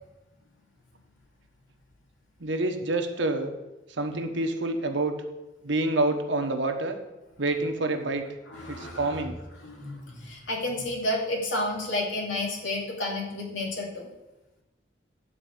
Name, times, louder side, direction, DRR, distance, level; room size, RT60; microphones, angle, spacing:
voice 1, 2.4-3.5 3.9-5.1 5.6-6.9 7.4-8.2 8.7-9.4, right 2 dB, 75° right, 5 dB, 1.1 m, -27 dB
voice 2, 8.5-9.3 9.6-14.1, left 1 dB, 90° left, -2 dB, 2.7 m, -31 dB
11.0 x 4.5 x 7.8 m, 1.0 s
head